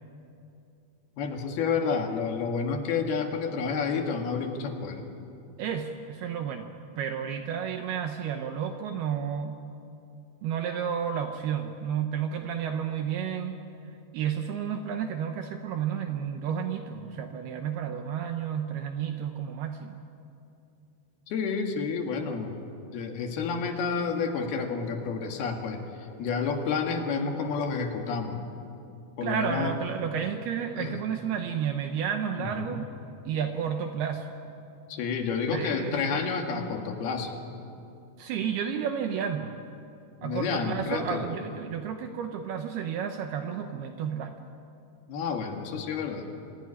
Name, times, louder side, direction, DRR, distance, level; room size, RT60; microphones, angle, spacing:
voice 1, 1.2-5.0 21.3-22.6 22.9-28.4 29.2-29.8 30.8-31.0 32.4-32.8 34.9-37.3 40.2-41.3 45.1-46.2, left 5 dB, 65° left, 3 dB, 3.6 m, -30 dB
voice 2, 5.6-9.6 10.4-13.6 14.1-20.0 29.2-32.9 33.3-34.3 35.5-36.0 38.2-39.5 40.2-44.3, right 8 dB, 75° right, 5 dB, 2.7 m, -31 dB
26.5 x 16.0 x 9.9 m, 2.7 s
omnidirectional pair, 5.0 m